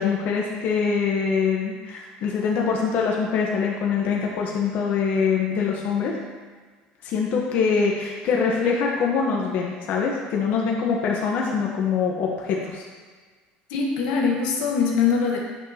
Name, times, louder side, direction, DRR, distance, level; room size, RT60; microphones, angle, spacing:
voice 1, 0.0-6.1 7.0-12.8, left 5 dB, 55° left, -2 dB, 1.1 m, -24 dB
voice 2, 13.7-15.4, left 5 dB, 85° left, -1 dB, 1.3 m, -22 dB
8.7 x 6.2 x 2.9 m, 1.5 s
cardioid pair, 130°, 3 cm